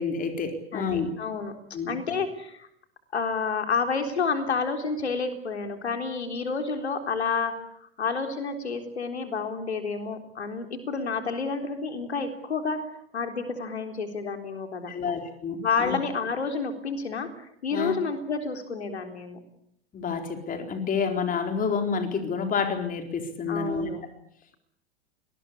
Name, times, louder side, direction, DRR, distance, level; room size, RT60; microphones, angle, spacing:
voice 1, 0.0-1.1 1.7-2.0 14.9-16.0 17.7-18.0 19.9-23.9, left 5 dB, 25° left, 6 dB, 4.3 m, -29 dB
voice 2, 0.7-1.5 1.9-2.7 3.1-7.5 7.8-12.8 13.1-14.9 15.6-17.3 17.6-19.4 23.5-24.0, left 4 dB, 80° left, 6 dB, 3.8 m, -29 dB
25.0 x 20.0 x 8.5 m, 0.73 s
figure-of-eight pair, 95°, 33 cm